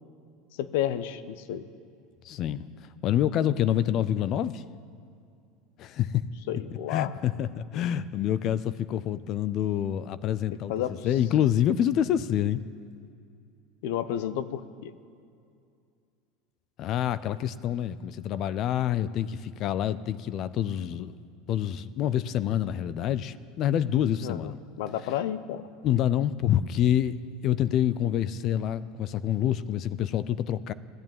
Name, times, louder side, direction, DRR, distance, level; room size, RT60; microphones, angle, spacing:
voice 1, 0.6-1.6 6.5-7.1 7.7-7.8 10.7-11.0 13.8-14.9 24.2-24.5 24.8-25.7, left 11 dB, 70° left, 13 dB, 0.8 m, -31 dB
voice 2, 2.2-4.6 5.8-6.2 6.9-12.6 16.8-21.2 21.5-24.6 25.8-27.2 27.4-30.7, left 10 dB, 40° left, 16 dB, 0.4 m, -27 dB
14.5 x 11.0 x 9.0 m, 2.4 s
supercardioid pair, 150°, 0 cm